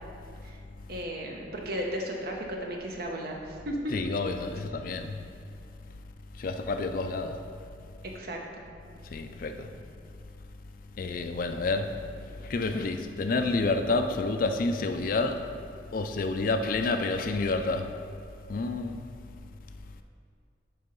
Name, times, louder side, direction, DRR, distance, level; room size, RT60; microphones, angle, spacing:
voice 1, 0.9-3.9 8.1-8.6, equal, 55° right, 0.9 m, -35 dB
voice 2, 3.9-5.2 6.4-7.3 9.1-9.7 11.0-11.9 12.3-15.4 15.9-17.9 18.5-19.1, left 3 dB, 45° left, 0.4 m, -29 dB
6.7 x 4.4 x 5.2 m
head